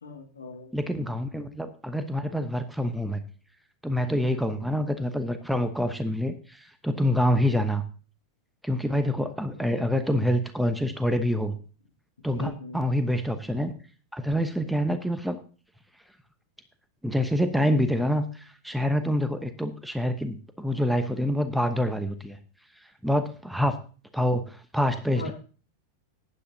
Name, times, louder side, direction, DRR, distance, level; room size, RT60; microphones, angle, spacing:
voice 1, 0.0-0.7 4.3-4.6 9.5-10.1 12.3-12.8 25.1-25.3, left 4 dB, 70° left, 3 dB, 2.1 m, -41 dB
voice 2, 0.7-3.2 3.8-7.8 8.6-11.6 12.2-13.7 14.1-15.4 17.0-22.4 23.0-23.8 24.1-25.3, equal, ahead, 9 dB, 1.0 m, -26 dB
15.0 x 10.5 x 2.8 m, 0.37 s
figure-of-eight pair, 90°, 0 cm